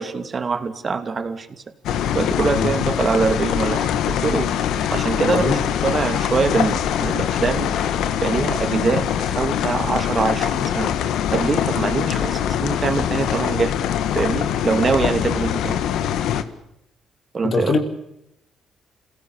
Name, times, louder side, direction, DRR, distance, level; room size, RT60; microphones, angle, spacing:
voice 1, 0.0-1.6 2.1-4.5 4.9-7.7 8.2-10.9 11.3-13.7 14.1-15.8 17.3-17.7, right 5 dB, 40° right, 9 dB, 2.9 m, -23 dB
sound 1, 1.8-16.4, left 9 dB, 85° left, 1.7 m, -23 dB
voice 2, 5.3-5.6 17.4-17.8, left 4 dB, 50° left, 6 dB, 4.5 m, -21 dB
27.0 x 17.5 x 8.8 m, 0.83 s
cardioid pair, 90°, 0 cm